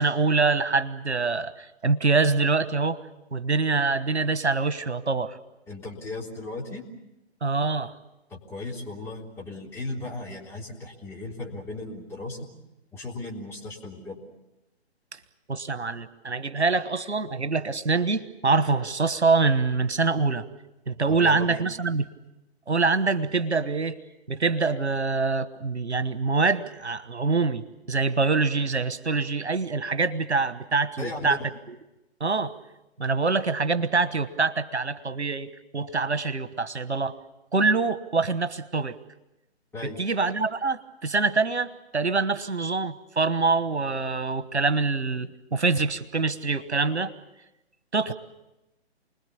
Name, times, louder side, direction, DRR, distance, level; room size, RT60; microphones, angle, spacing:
voice 1, 0.0-3.0 3.3-5.4 7.4-7.9 15.5-20.5 20.9-22.1 22.7-24.0 24.3-31.4 31.7-31.8 32.2-32.5 33.0-37.2 37.5-39.0 39.8-47.1 47.9-48.1, right 4 dB, 80° right, 13 dB, 1.4 m, -25 dB
voice 2, 5.7-6.8 8.3-12.5 12.9-14.2 21.1-21.7 31.0-31.5 39.7-40.0, left 2 dB, 5° left, -5 dB, 3.7 m, -36 dB
29.5 x 21.0 x 7.1 m, 0.95 s
figure-of-eight pair, 135°, 33 cm